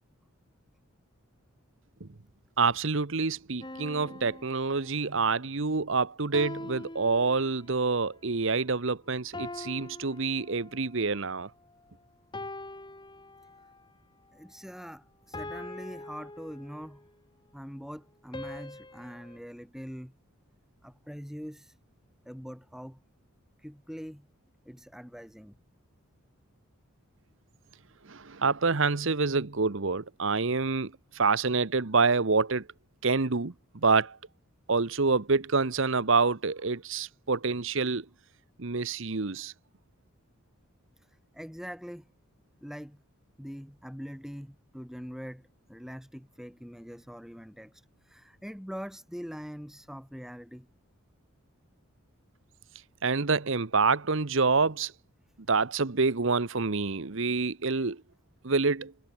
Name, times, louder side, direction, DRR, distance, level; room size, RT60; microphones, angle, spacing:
voice 1, 2.6-11.5 28.0-32.7 33.0-34.2 34.7-38.1 38.6-39.5 53.0-54.9 55.5-58.0 58.4-58.9, right 4 dB, 60° right, 1.0 m, -27 dB
sound 1, 3.6-5.3 6.3-7.8 9.3-11.0 12.3-13.8 15.3-17.1 18.3-19.4, left 2 dB, 20° left, 2.9 m, -43 dB
voice 2, 14.3-17.1 17.5-20.1 20.8-21.8 22.2-23.0 23.6-24.3 24.6-25.5 41.0-42.1 42.6-43.0 43.4-50.7, equal, ahead, 4.1 m, -43 dB
head